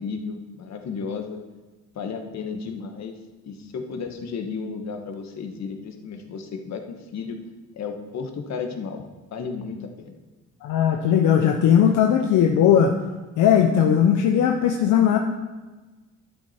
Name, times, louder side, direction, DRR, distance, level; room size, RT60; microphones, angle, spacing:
voice 1, 0.0-1.4 1.9-3.1 3.4-7.4 7.7-9.0 9.3-10.2, left 5 dB, 60° left, 5 dB, 1.4 m, -33 dB
voice 2, 10.6-12.9 13.4-15.2, left 9 dB, 85° left, 4 dB, 0.7 m, -18 dB
11.5 x 7.7 x 4.3 m, 1.2 s
cardioid pair, 90°, 30 cm